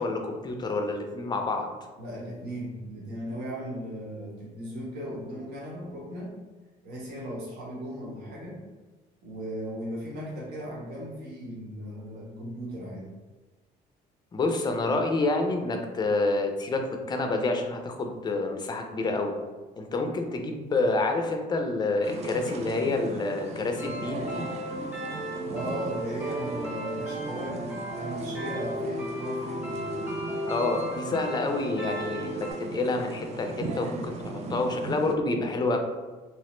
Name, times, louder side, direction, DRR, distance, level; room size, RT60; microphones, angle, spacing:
voice 1, 0.0-1.7 14.3-19.3 19.8-24.4 30.5-35.8, left 2 dB, 25° left, 4 dB, 0.4 m, -28 dB
voice 2, 2.0-6.3 6.8-8.6 9.2-13.1 25.4-29.9, equal, 70° right, -4 dB, 1.1 m, -37 dB
sound 1, 22.0-35.2, right 3 dB, 40° right, 0.4 m, -38 dB
sound 2, 23.8-32.5, equal, 10° right, 0.7 m, -35 dB
3.1 x 2.0 x 3.0 m, 1.2 s
cardioid pair, 110°, 17 cm